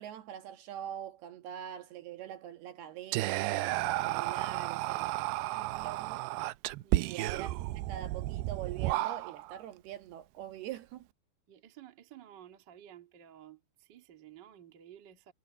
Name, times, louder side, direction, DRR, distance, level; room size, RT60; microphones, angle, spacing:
voice 1, 0.0-3.8 4.0-5.1 5.5-6.2 6.9-11.1, right 10 dB, 70° right, 3.1 m, -43 dB
Whispering, 3.1-9.6, right 17 dB, 85° right, 2.2 m, -33 dB
voice 2, 6.8-7.3 11.5-15.3, right 11 dB, 40° right, 1.6 m, -54 dB
omnidirectional pair, 5.2 m